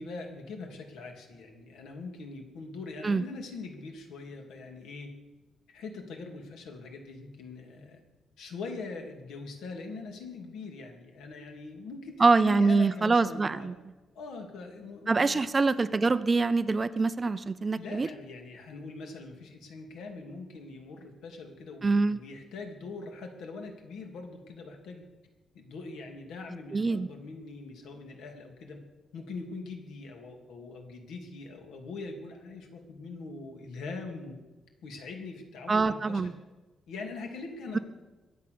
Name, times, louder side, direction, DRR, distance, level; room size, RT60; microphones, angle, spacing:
voice 1, 0.0-5.1 5.7-8.0 8.4-13.7 14.1-15.4 17.7-25.1 25.5-28.8 29.1-34.3 34.8-36.3 36.9-37.8, left 3 dB, 80° left, 3 dB, 3.0 m, -42 dB
voice 2, 12.2-13.7 15.1-18.1 21.8-22.2 26.7-27.1 35.7-36.3, right 3 dB, 20° right, 14 dB, 0.4 m, -24 dB
23.0 x 8.9 x 6.8 m, 1.1 s
cardioid pair, 175°, 0 cm